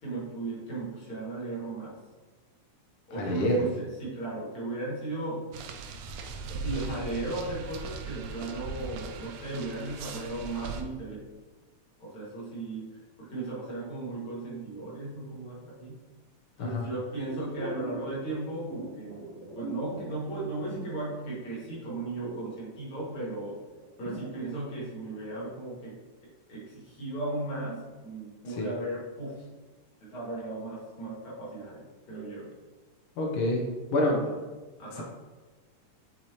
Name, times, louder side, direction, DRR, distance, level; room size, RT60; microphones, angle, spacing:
voice 1, 0.0-1.9 3.1-5.5 6.5-11.2 12.0-16.0 16.6-19.2 19.6-23.6 24.0-26.0 26.2-29.4 30.0-31.8 32.1-32.5 34.0-34.3 34.8-35.0, right 2 dB, 45° left, -7 dB, 2.6 m, -36 dB
voice 2, 3.1-3.6 16.6-16.8 28.5-28.7 33.2-33.6 33.9-34.2, left 1 dB, 80° left, -1 dB, 1.2 m, -27 dB
sound 1, 5.5-10.8, right 4 dB, 85° right, 1.4 m, -39 dB
sound 2, 17.2-21.6 21.9-25.4 25.8-25.9, right 1 dB, 60° right, 1.7 m, -42 dB
7.2 x 4.6 x 2.9 m, 1.3 s
omnidirectional pair, 3.6 m